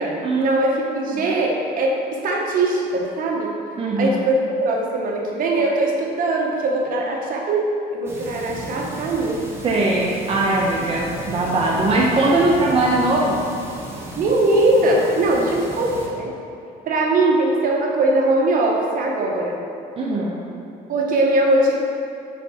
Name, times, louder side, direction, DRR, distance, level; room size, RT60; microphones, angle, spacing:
voice 1, 0.0-3.5 4.0-9.4 14.2-16.3 16.9-19.6 20.9-21.8, right 2 dB, 55° right, -1 dB, 1.2 m, -21 dB
voice 2, 3.8-4.2 9.6-13.4 20.0-20.4, right 2 dB, 35° right, -4 dB, 0.9 m, -20 dB
sound 1, 8.1-16.1, right 1 dB, 15° right, 1.2 m, -34 dB
6.7 x 4.8 x 4.3 m, 2.7 s
cardioid pair, 110°, 17 cm